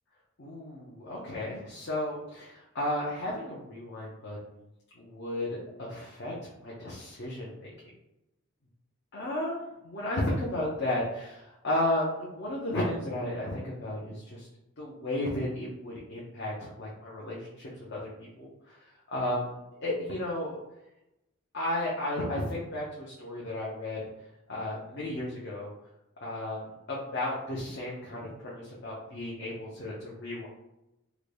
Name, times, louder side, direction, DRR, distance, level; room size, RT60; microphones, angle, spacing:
voice 1, 0.4-4.6 5.0-7.7 9.1-14.5 14.8-18.8 19.1-20.6 21.5-24.0 24.5-25.7 26.2-26.6 26.9-30.5, left 1 dB, 50° left, -5 dB, 0.6 m, -34 dB
3.8 x 2.2 x 3.3 m, 0.93 s
head